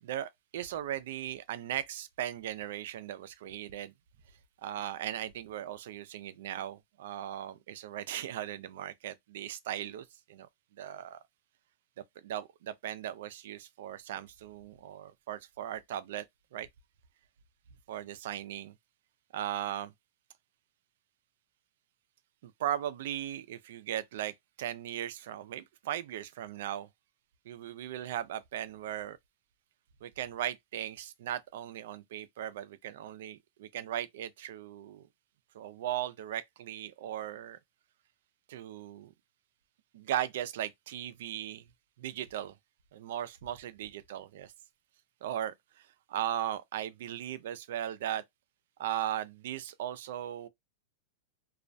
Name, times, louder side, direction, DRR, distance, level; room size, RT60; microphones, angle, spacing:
voice 1, 0.0-3.9 4.6-10.5 10.8-11.2 12.2-16.2 16.5-16.7 17.9-18.7 19.3-19.9 22.4-26.9 27.5-29.2 30.0-35.1 35.5-37.6 38.5-39.1 39.9-41.6 42.0-42.5 42.9-44.5 45.2-45.5 46.1-48.2 48.8-50.5, right 11 dB, 70° right, 0.4 m, -37 dB
2.3 x 2.1 x 2.6 m
supercardioid pair, 145°, 0 cm